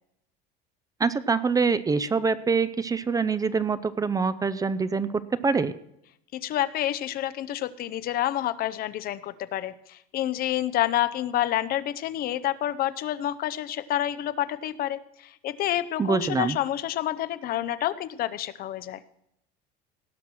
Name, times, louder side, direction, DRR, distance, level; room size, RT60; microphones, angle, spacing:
voice 1, 1.0-5.7 16.0-16.6, right 5 dB, 20° right, 15 dB, 0.5 m, -25 dB
voice 2, 6.3-19.0, left 12 dB, 50° left, 15 dB, 0.6 m, -28 dB
17.0 x 6.0 x 6.0 m, 0.78 s
supercardioid pair, 115°, 20 cm